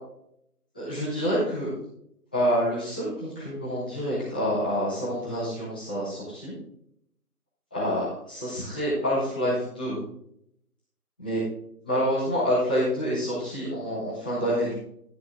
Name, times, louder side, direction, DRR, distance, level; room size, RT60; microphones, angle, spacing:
voice 1, 0.7-1.7 2.3-6.5 7.7-10.0 11.2-11.4 11.8-14.7, equal, 5° left, -14 dB, 1.7 m, -27 dB
12.5 x 7.7 x 3.7 m, 0.72 s
figure-of-eight pair, 170°, 46 cm